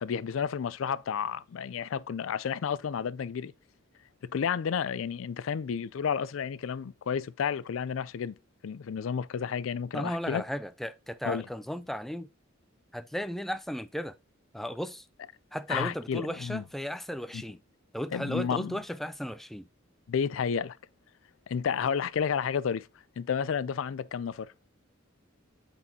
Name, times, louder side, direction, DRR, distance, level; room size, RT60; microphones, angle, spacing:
voice 1, 0.0-3.5 4.2-8.4 8.6-10.4 11.2-11.5 15.7-16.6 17.3-17.4 18.1-18.8 20.1-20.8 21.5-22.9 23.2-24.5, left 7 dB, 85° left, 0.4 m, -31 dB
voice 2, 9.9-12.3 12.9-14.1 14.5-15.1 15.5-17.6 17.9-19.7, equal, ahead, 0.3 m, -35 dB
8.7 x 4.2 x 2.8 m
head